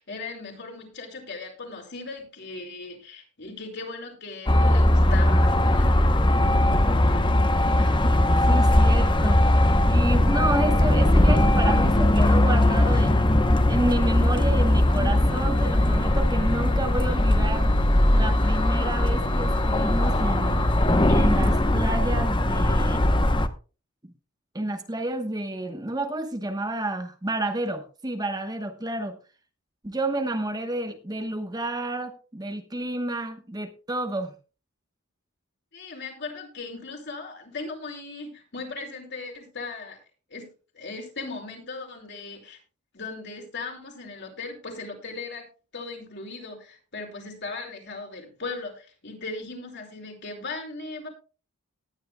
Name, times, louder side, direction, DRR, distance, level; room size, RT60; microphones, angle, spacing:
voice 1, 0.0-5.9 35.7-40.0 40.3-40.5 40.7-42.6 42.9-45.5 45.7-51.1, left 3 dB, 55° left, 1 dB, 5.1 m, -38 dB
sound 1, 4.5-23.5, left 1 dB, 20° left, 0.8 m, -20 dB
voice 2, 7.8-9.4 9.9-13.3 13.7-17.7 18.1-20.6 21.1-23.0 24.0-24.1 24.5-29.2 29.8-34.3, right 1 dB, 20° right, 6 dB, 1.0 m, -30 dB
19.0 x 10.5 x 2.2 m, 0.34 s
head